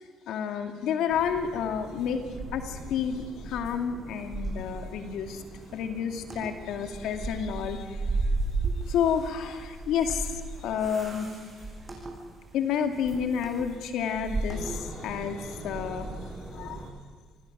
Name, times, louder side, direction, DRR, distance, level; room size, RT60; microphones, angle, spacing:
voice 1, 0.3-2.2 2.5-3.2 3.5-5.4 5.7-7.8 8.9-10.2 10.6-11.3 12.5-14.7 15.0-16.1 16.6-16.8, left 7 dB, 75° left, 5 dB, 2.2 m, -29 dB
sound 1, 1.1-16.9, right 2 dB, 30° right, 7.5 m, -36 dB
28.0 x 19.5 x 6.2 m, 1.5 s
supercardioid pair, 70°, 0 cm